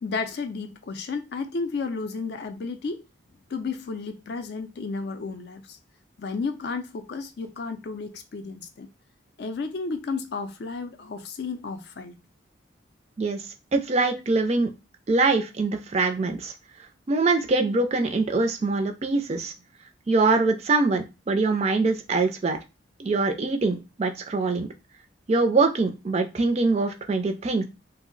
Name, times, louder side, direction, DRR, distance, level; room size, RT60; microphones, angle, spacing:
voice 1, 0.0-3.0 3.5-5.8 6.2-8.9 9.4-12.2, left 4 dB, 55° left, 0.4 m, -32 dB
voice 2, 13.7-14.7 15.1-16.5 17.1-19.5 20.1-22.6 23.0-24.7 25.3-27.6, right 3 dB, 30° right, 0.3 m, -23 dB
2.6 x 2.0 x 3.7 m
head